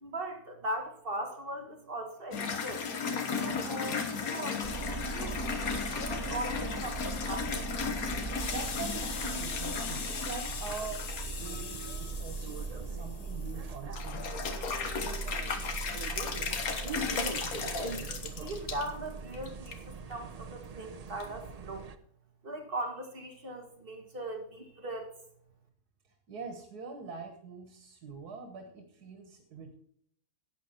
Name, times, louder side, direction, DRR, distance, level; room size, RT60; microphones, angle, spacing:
voice 1, 0.0-2.8 3.3-7.6 17.7-18.0 18.4-21.9 22.4-25.1, right 1 dB, 35° right, 3 dB, 2.0 m, -39 dB
sound 1, 2.3-13.6 13.9-18.9 19.3-19.8 20.1-20.2 21.2-21.3, left 5 dB, 70° left, 1.7 m, -35 dB
sound 2, 4.6-21.9, right 4 dB, 60° right, 0.4 m, -40 dB
voice 2, 8.3-11.0 11.4-14.4 26.3-29.7, right 5 dB, 90° right, 4 dB, 2.0 m, -44 dB
11.5 x 9.0 x 4.4 m, 0.64 s
omnidirectional pair, 1.6 m